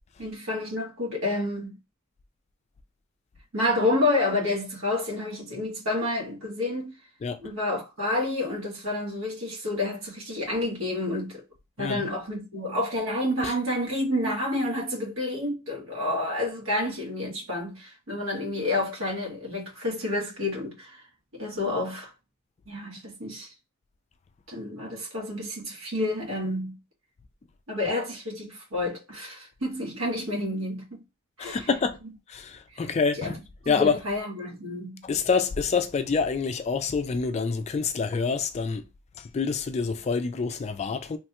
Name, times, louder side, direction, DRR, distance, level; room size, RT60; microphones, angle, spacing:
voice 1, 0.2-1.8 3.5-6.9 7.4-11.4 11.8-21.0 21.3-22.1 22.7-23.5 24.5-26.8 27.7-31.0 31.4-31.6 32.7-32.9 33.2-33.4 33.6-35.0, left 2 dB, 80° right, 1.3 m, -29 dB
voice 2, 11.8-12.1 13.4-13.5 31.4-32.0 32.3-33.4 33.7-34.0 35.0-38.8 39.2-41.2, left 5 dB, 30° left, 0.3 m, -27 dB
3.1 x 2.2 x 2.8 m
head